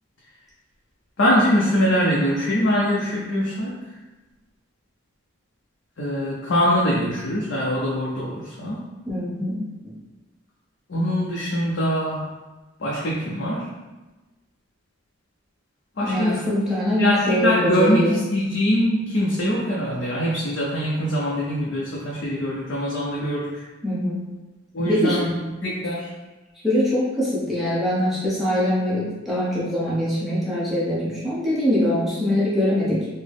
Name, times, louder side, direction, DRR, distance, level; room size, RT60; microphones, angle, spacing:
voice 1, 1.2-3.8 6.0-8.8 10.9-12.3 12.8-13.7 16.0-16.4 16.8-23.6 24.7-26.1, equal, 65° left, -5 dB, 0.6 m, -23 dB
voice 2, 9.1-9.9 16.0-18.2 23.8-24.3 24.8-25.2 26.6-33.1, left 1 dB, ahead, -10 dB, 0.8 m, -23 dB
3.9 x 2.1 x 3.4 m, 1.1 s
head